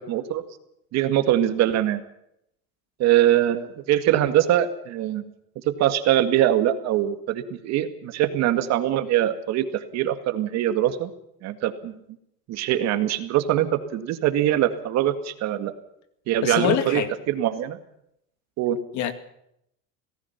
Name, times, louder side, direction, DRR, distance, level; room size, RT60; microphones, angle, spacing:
voice 1, 0.1-0.4 0.9-2.0 3.0-5.2 5.7-11.1 11.4-11.9 12.5-15.7 16.3-17.0 17.3-17.8 18.6-18.8, right 12 dB, 45° right, 2.1 m, -22 dB
voice 2, 16.4-17.1 18.9-19.1, left 9 dB, 45° left, 2.2 m, -24 dB
26.5 x 18.0 x 5.8 m
cardioid pair, 160°, 39 cm